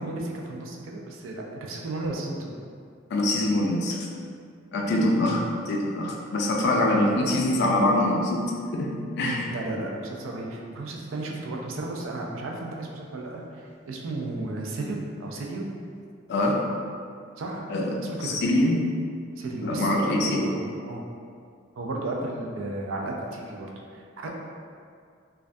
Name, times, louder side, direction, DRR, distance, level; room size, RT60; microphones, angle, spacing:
voice 1, 0.0-2.5 5.2-5.4 6.8-7.3 9.2-15.7 17.4-17.7 18.1-18.4 19.4-21.0 21.8-24.3, right 2 dB, 85° right, 0 dB, 0.4 m, -34 dB
voice 2, 3.1-4.0 4.7-9.5 16.3-16.8 17.7-18.8 19.6-20.5, left 1 dB, 60° left, 0 dB, 0.3 m, -24 dB
2.2 x 2.1 x 2.5 m, 2.3 s
head